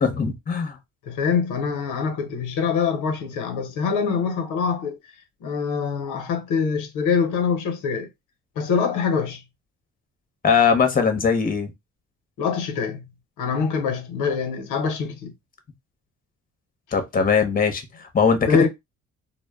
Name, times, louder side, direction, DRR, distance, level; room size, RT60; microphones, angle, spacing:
voice 1, 0.0-0.8 10.4-11.7 16.9-18.7, left 6 dB, 30° left, 0.7 m, -20 dB
voice 2, 1.1-5.0 5.4-8.1 8.6-9.4 12.4-13.0 13.4-15.3 18.4-18.7, left 5 dB, 85° left, 0.7 m, -24 dB
2.1 x 2.0 x 3.4 m
cardioid pair, 90°, 30 cm